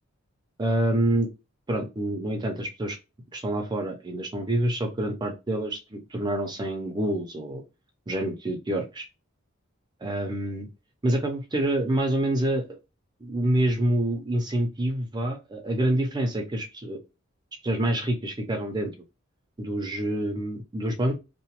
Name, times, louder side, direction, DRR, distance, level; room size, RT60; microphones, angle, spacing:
voice 1, 0.6-1.3 1.7-3.0 3.3-7.6 8.1-9.1 10.0-10.7 11.0-12.7 13.2-17.0 17.6-18.9 19.6-21.2, right 1 dB, 20° right, 5 dB, 0.4 m, -27 dB
2.8 x 2.1 x 2.9 m, 0.26 s
head